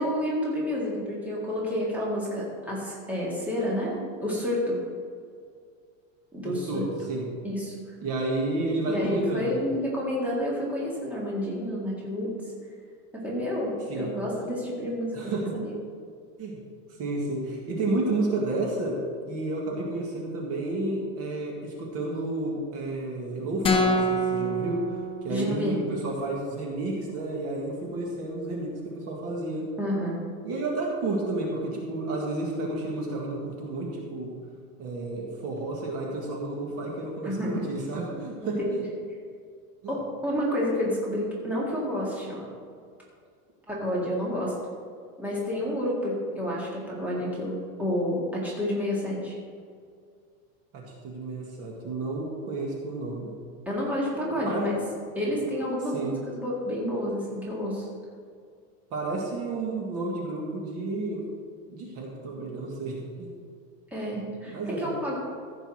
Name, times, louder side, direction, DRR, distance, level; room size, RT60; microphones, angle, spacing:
voice 1, 0.0-4.8 6.3-6.9 7.4-7.8 8.9-12.3 13.1-15.7 25.3-25.8 29.8-30.2 37.2-37.6 38.6-38.7 39.9-42.5 43.7-44.6 45.2-49.4 53.7-54.8 55.2-57.9 63.9-65.2, equal, 5° right, -5 dB, 2.0 m, -29 dB
voice 2, 6.4-7.3 8.0-9.6 13.9-14.1 15.1-15.5 16.4-16.6 17.0-19.0 19.3-24.8 25.2-29.6 30.4-34.3 34.8-38.9 39.8-39.9 50.7-53.3 54.5-54.6 55.9-56.1 58.9-61.2 61.7-63.3 64.4-64.9, right 2 dB, 35° right, -1 dB, 1.8 m, -31 dB
sound 1, 23.6-25.7, equal, 15° left, 0.9 m, -26 dB
15.0 x 5.3 x 6.4 m, 2.2 s
supercardioid pair, 170°, 41 cm